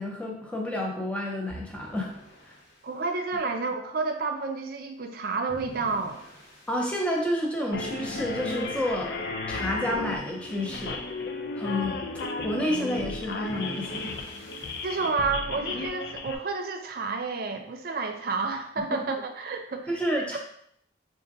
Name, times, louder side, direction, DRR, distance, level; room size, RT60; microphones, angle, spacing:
voice 1, 0.0-2.1 6.7-9.2 9.5-11.0 11.6-12.0 12.4-14.1 19.9-20.4, left 1 dB, 5° left, -1 dB, 0.5 m, -29 dB
sound 1, 1.5-2.9 5.5-7.0 9.5-10.9 13.5-15.0, right 1 dB, 85° left, 1.0 m, -46 dB
voice 2, 2.8-6.2 14.8-19.9 20.2-20.4, right 4 dB, 50° right, 5 dB, 0.4 m, -30 dB
sound 2, 7.7-16.4, left 3 dB, 55° left, 0.4 m, -34 dB
4.9 x 2.5 x 2.6 m, 0.68 s
head